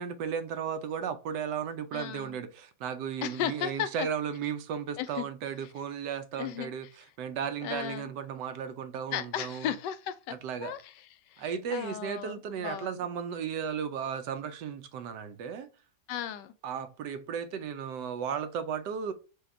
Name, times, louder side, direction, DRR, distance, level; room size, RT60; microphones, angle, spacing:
voice 1, 0.0-9.7 10.4-10.8 11.4-15.7 16.6-19.1, right 7 dB, 80° right, 1.2 m, -35 dB
voice 2, 1.9-2.4 3.2-4.1 5.0-5.3 6.4-6.7 7.6-8.1 9.1-10.3 10.6-10.9 11.3-11.4 11.7-13.0 16.1-16.5, left 10 dB, 90° left, 1.2 m, -35 dB
5.0 x 2.3 x 4.3 m
omnidirectional pair, 1.8 m